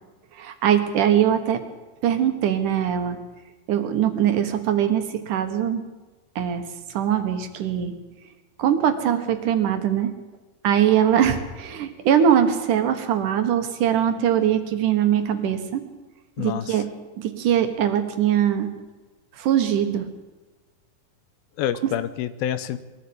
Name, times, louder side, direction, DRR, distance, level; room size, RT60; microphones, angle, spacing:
voice 1, 0.3-1.6 2.0-3.2 3.7-5.9 6.4-6.6 6.9-7.9 8.6-10.1 10.6-15.8 16.4-16.9 17.2-18.7 19.4-20.1, right 9 dB, 65° right, 8 dB, 2.6 m, -22 dB
voice 2, 16.4-16.8 21.6-22.8, left 10 dB, 80° left, 13 dB, 2.6 m, -27 dB
21.5 x 14.5 x 8.6 m, 1.2 s
omnidirectional pair, 4.3 m